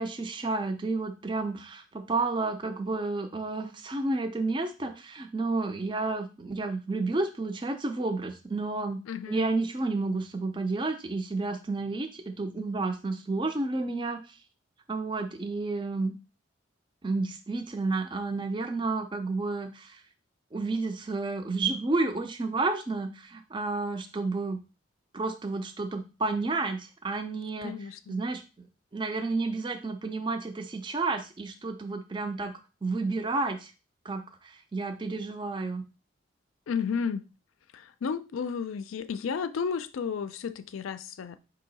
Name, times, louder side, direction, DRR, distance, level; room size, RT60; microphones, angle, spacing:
voice 1, 0.0-9.0 9.3-14.4 14.9-16.2 17.0-20.0 20.5-24.6 25.1-27.7 28.1-28.7 28.9-32.5 32.8-33.7 34.0-35.8, right 3 dB, 25° right, 0.4 m, -31 dB
voice 2, 9.1-9.5 27.6-28.2 36.7-37.3 37.7-41.4, left 6 dB, 85° left, 0.4 m, -32 dB
4.6 x 2.8 x 4.0 m
head